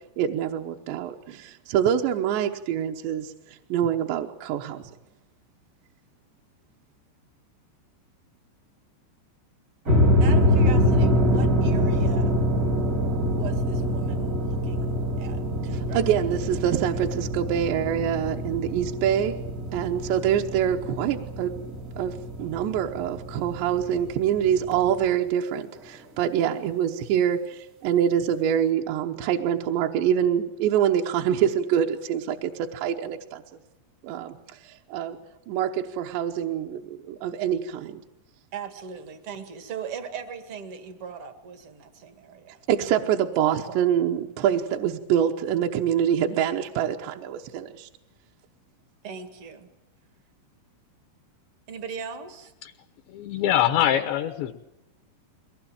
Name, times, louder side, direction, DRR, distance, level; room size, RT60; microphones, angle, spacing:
voice 1, 0.2-4.8 15.7-19.4 19.7-21.7 22.0-33.4 34.0-34.4 34.6-35.2 35.5-38.0 42.7-47.9, right 9 dB, 75° right, 2 dB, 2.9 m, -25 dB
sound 1, 9.8-25.1, equal, 40° right, 1.2 m, -25 dB
voice 2, 10.2-12.3 13.3-16.0 38.5-42.6 43.6-43.8 49.0-49.7 51.7-52.5, right 7 dB, 55° right, 8 dB, 1.5 m, -39 dB
voice 3, 53.1-54.5, left 11 dB, 75° left, 7 dB, 3.0 m, -23 dB
23.0 x 19.5 x 8.9 m, 0.92 s
omnidirectional pair, 5.6 m